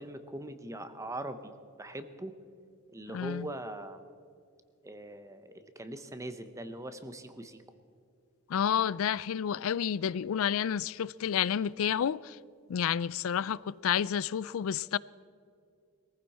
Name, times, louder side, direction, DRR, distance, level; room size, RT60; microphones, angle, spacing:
voice 1, 0.0-1.5 1.8-2.3 2.9-4.1 4.8-7.6, right 1 dB, 15° right, 0.9 m, -41 dB
voice 2, 3.1-3.5 8.5-12.4 12.7-15.0, left 8 dB, 65° left, 0.4 m, -30 dB
22.0 x 15.0 x 4.3 m
head